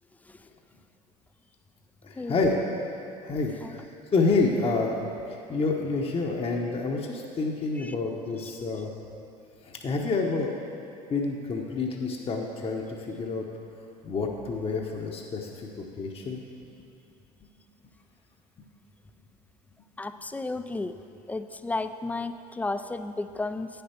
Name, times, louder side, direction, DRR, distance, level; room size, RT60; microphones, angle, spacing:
voice 1, 2.0-2.6 3.2-8.9 9.6-10.5 11.1-13.4 14.0-16.4, left 3 dB, 30° left, 1 dB, 0.8 m, -28 dB
voice 2, 20.0-20.9 21.3-23.7, left 3 dB, 10° left, 11 dB, 0.3 m, -33 dB
9.3 x 6.7 x 4.4 m, 2.7 s
hypercardioid pair, 70°, 20 cm